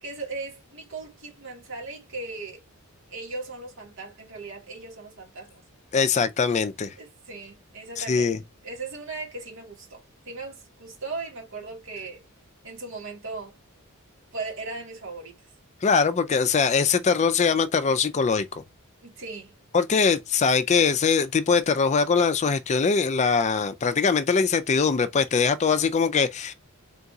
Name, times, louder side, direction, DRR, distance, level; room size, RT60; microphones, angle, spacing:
voice 1, 0.0-2.6 3.1-5.6 7.0-8.4 8.6-10.0 10.3-12.2 12.6-13.6 14.3-15.4 19.0-19.5, right 3 dB, 60° right, 2.0 m, -37 dB
voice 2, 5.9-6.9 8.0-8.4 15.8-18.6 19.7-26.5, left 5 dB, 30° left, 0.4 m, -22 dB
3.8 x 3.6 x 2.7 m
head